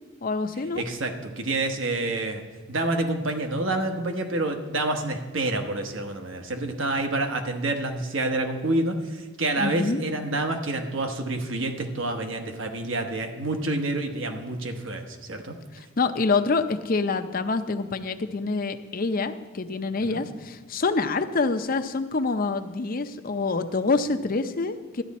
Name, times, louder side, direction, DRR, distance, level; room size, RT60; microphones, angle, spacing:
voice 1, 0.2-0.8 9.6-10.0 16.0-25.0, left 3 dB, 45° left, 9 dB, 0.6 m, -26 dB
voice 2, 0.7-2.4 2.7-15.6 20.1-20.2, right 2 dB, 65° right, 5 dB, 1.2 m, -28 dB
13.0 x 10.0 x 4.2 m, 1.3 s
head